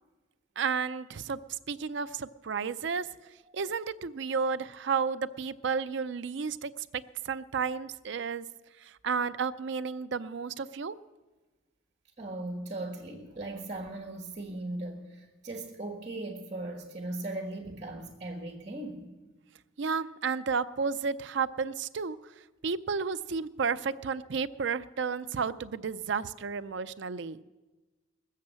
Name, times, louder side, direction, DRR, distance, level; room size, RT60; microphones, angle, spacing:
voice 1, 0.6-1.4 1.7-3.1 3.5-8.4 8.8-11.0 19.8-22.2 22.6-27.4, right 5 dB, 60° right, 13 dB, 0.5 m, -32 dB
voice 2, 12.2-19.1, right 2 dB, 35° right, 0 dB, 1.5 m, -38 dB
20.5 x 7.5 x 7.5 m, 1.2 s
head